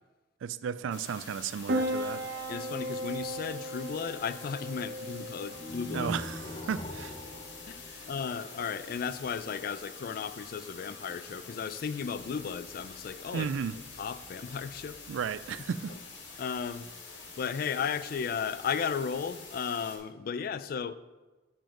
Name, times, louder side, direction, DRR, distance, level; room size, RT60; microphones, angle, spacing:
voice 1, 0.4-2.3 5.9-7.2 13.3-13.8 15.1-16.0, right 7 dB, 90° right, 0.3 m, -34 dB
sound 1, 0.9-20.0, left 4 dB, 75° left, 1.8 m, -47 dB
Piano, 1.7-16.7, right 1 dB, 55° right, 0.8 m, -40 dB
voice 2, 2.5-6.1 7.7-13.5 14.0-15.0 16.4-16.9 17.4-20.9, left 6 dB, 50° left, 0.3 m, -35 dB
sound 2, 5.5-8.7, left 1 dB, 30° left, 0.8 m, -42 dB
7.4 x 7.1 x 3.8 m
head